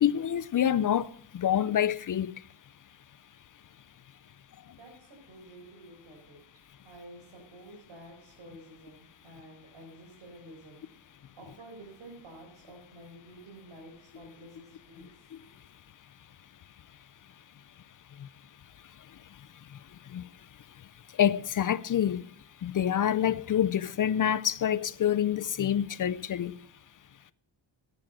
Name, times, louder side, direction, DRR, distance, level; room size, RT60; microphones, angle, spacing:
voice 1, 0.0-1.1 1.3-2.3 20.1-20.2 21.2-22.2 22.6-26.5, left 10 dB, 45° left, 0.5 m, -26 dB
voice 2, 4.6-6.4 6.8-15.6, right 1 dB, 80° right, 4.7 m, -51 dB
13.0 x 9.8 x 6.4 m
wide cardioid pair, 160°, 45 cm